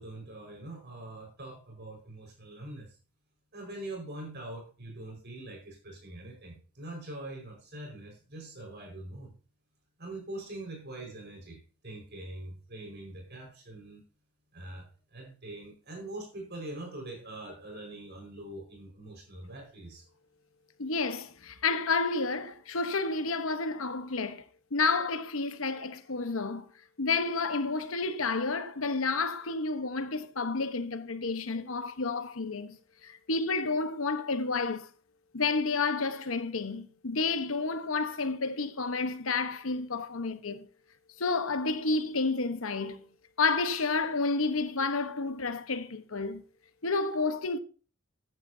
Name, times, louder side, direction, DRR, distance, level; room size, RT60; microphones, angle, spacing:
voice 1, 0.0-2.9 3.5-9.3 10.0-14.0 14.5-20.0, right 1 dB, 50° right, 4.8 m, -43 dB
voice 2, 20.8-24.4 24.7-26.6 27.0-32.8 33.0-34.9 35.3-40.7 41.2-43.1 43.4-46.4 46.8-47.6, left 4 dB, 70° left, 1.1 m, -30 dB
13.5 x 9.7 x 2.7 m
head